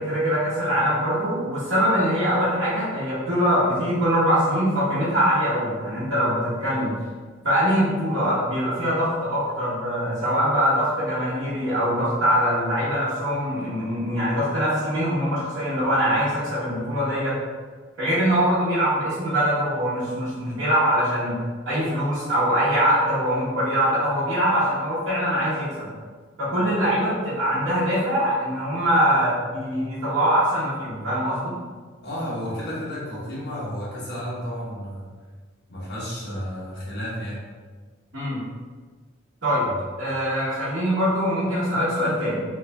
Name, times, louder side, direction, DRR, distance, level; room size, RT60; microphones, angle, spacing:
voice 1, 0.0-7.0 7.4-17.4 18.0-21.4 21.7-25.9 26.4-31.6 38.1-38.4 39.4-39.7 40.0-42.4, equal, 75° right, -11 dB, 1.0 m, -23 dB
voice 2, 32.0-35.0 35.7-37.4, equal, 55° left, -7 dB, 1.2 m, -32 dB
3.1 x 2.5 x 3.3 m, 1.4 s
head